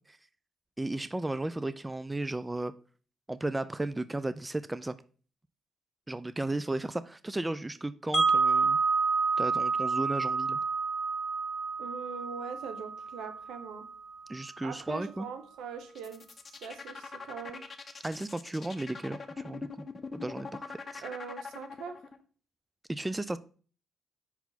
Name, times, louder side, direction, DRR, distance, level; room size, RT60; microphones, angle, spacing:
voice 1, 0.8-2.7 3.3-4.9 6.1-8.8 9.4-10.6 14.3-15.3 18.0-19.9 20.1-20.6 20.9-21.0 22.9-23.4, right 2 dB, 15° right, 0.3 m, -34 dB
Wind chime, 8.1-14.1, right 4 dB, ahead, 1.6 m, -29 dB
voice 2, 11.8-13.9 14.6-16.2 16.5-17.7 21.0-22.0, right 6 dB, 85° right, 1.0 m, -42 dB
sound 1, 15.9-22.2, left 4 dB, 35° left, 0.7 m, -42 dB
5.6 x 4.6 x 4.0 m
cardioid pair, 90°, 0 cm